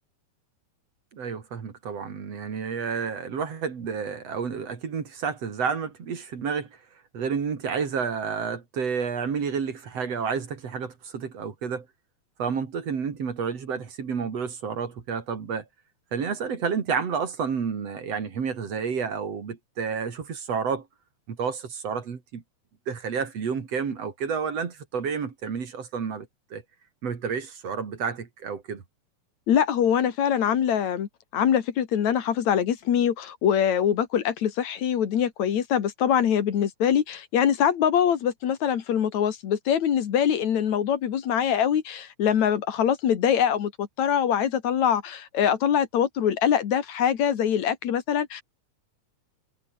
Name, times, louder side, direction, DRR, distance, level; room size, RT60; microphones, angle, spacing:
voice 1, 1.1-6.7 7.1-11.9 12.4-15.7 16.1-20.9 21.3-22.4 22.9-26.6 27.0-28.8, right 6 dB, 55° right, 3.8 m, -30 dB
voice 2, 29.5-48.4, left 9 dB, 70° left, 3.1 m, -23 dB
omnidirectional pair, 3.4 m